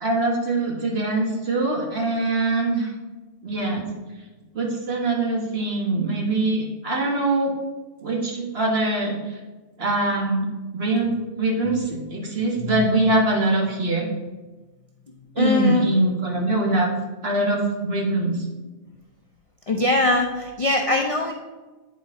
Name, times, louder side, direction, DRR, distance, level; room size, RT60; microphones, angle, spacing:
voice 1, 0.0-2.9 3.4-3.9 4.5-7.5 8.0-9.2 9.8-10.5 10.7-14.1 15.3-16.9 17.2-18.4, right 2 dB, 50° right, -1 dB, 1.5 m, -23 dB
voice 2, 15.4-15.9 19.7-21.3, left 2 dB, 55° left, 1 dB, 0.4 m, -22 dB
9.1 x 4.3 x 3.6 m, 1.2 s
omnidirectional pair, 1.4 m